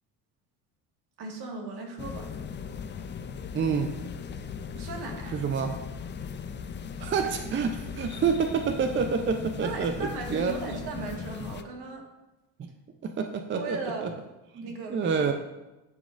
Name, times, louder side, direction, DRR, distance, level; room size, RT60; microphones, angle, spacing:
voice 1, 1.2-2.3 4.7-5.3 9.6-12.0 13.5-14.2 14.6-15.3, right 3 dB, 60° right, 1 dB, 1.7 m, -37 dB
sound 1, 2.0-11.6, left 6 dB, 25° left, 0.5 m, -38 dB
voice 2, 3.5-3.9 5.3-5.8 7.0-10.8 12.6-12.7 13.0-14.1 14.6-15.3, right 6 dB, 25° right, 6 dB, 0.5 m, -28 dB
10.5 x 4.9 x 2.5 m, 1.0 s
hypercardioid pair, 65°, 45 cm